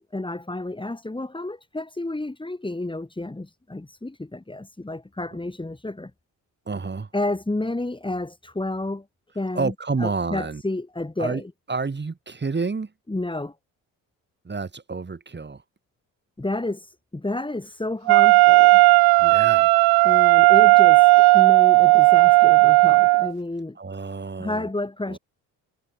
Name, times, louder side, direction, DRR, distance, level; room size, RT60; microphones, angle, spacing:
voice 1, 0.1-6.1 7.1-9.0 9.3-9.7 10.0-11.5 13.1-13.5 16.4-16.9 17.1-18.8 20.0-21.1 21.3-23.8 24.4-25.2, left 2 dB, 15° left, 4.5 m, -30 dB
voice 2, 6.7-7.1 9.5-10.6 11.2-11.4 11.7-12.9 14.4-15.6 19.2-19.7 23.8-24.7 25.1-25.2, right 4 dB, 30° right, 6.0 m, -29 dB
Wind instrument woodwind instrument, 18.1-23.3, right 24 dB, 80° right, 0.6 m, -14 dB
supercardioid pair, 70°, 37 cm